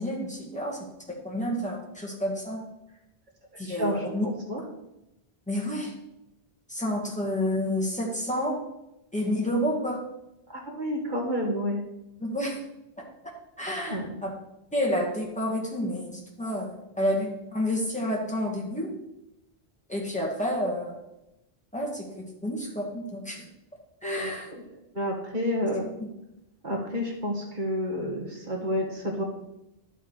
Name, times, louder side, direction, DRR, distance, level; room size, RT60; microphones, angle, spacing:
voice 1, 0.0-2.6 3.6-4.3 5.5-5.9 6.7-8.6 9.1-10.0 12.2-12.6 13.0-13.1 13.6-14.3 14.7-18.9 19.9-21.0 21.7-23.4 24.0-24.5 26.0-26.1, equal, 5° left, -3 dB, 2.0 m, -30 dB
voice 2, 3.6-4.6 10.5-11.8 13.9-14.2 24.0-24.6 24.9-25.9 26.6-29.2, equal, 50° right, 0 dB, 1.9 m, -30 dB
11.0 x 7.4 x 4.9 m, 0.90 s
omnidirectional pair, 1.1 m